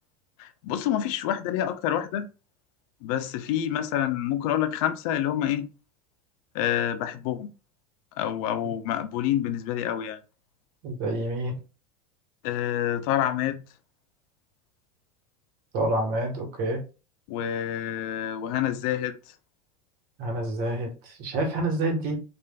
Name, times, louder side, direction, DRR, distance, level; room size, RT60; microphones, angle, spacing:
voice 1, 0.4-2.3 3.0-5.7 6.5-7.5 8.2-10.2 12.4-13.6 17.3-19.1, left 11 dB, 65° left, 0.5 m, -27 dB
voice 2, 10.8-11.6 15.7-16.8 20.2-22.2, right 1 dB, 55° right, 1.2 m, -28 dB
3.2 x 2.5 x 2.3 m
hypercardioid pair, 100°, 19 cm